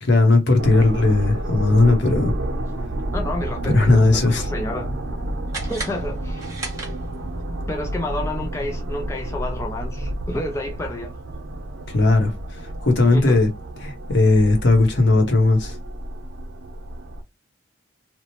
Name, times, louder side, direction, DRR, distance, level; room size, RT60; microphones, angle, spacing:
voice 1, 0.0-2.3 3.6-4.5 11.9-13.5 13.8-15.8, left 2 dB, 60° left, 0.8 m, -17 dB
sound 1, 0.6-17.2, right 1 dB, 80° right, 0.7 m, -30 dB
voice 2, 3.1-4.9 5.6-6.5 7.7-11.1 13.1-13.4, left 1 dB, 15° left, 0.3 m, -30 dB
sound 2, 5.5-7.4, right 3 dB, 15° right, 1.0 m, -35 dB
2.9 x 2.0 x 2.8 m
head